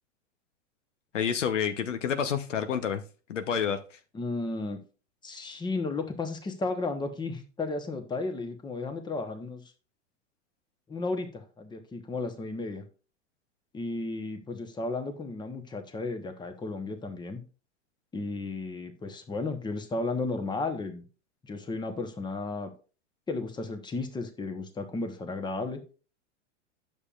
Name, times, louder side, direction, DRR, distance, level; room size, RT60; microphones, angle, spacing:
voice 1, 1.1-3.0 3.3-4.0, left 7 dB, 85° left, 1.0 m, -29 dB
voice 2, 4.1-4.8 5.2-9.6 10.9-12.8 13.7-17.4 18.1-21.0 21.4-22.7 23.3-25.8, left 3 dB, 10° left, 1.1 m, -34 dB
9.6 x 7.2 x 2.5 m
hypercardioid pair, 115°, 36 cm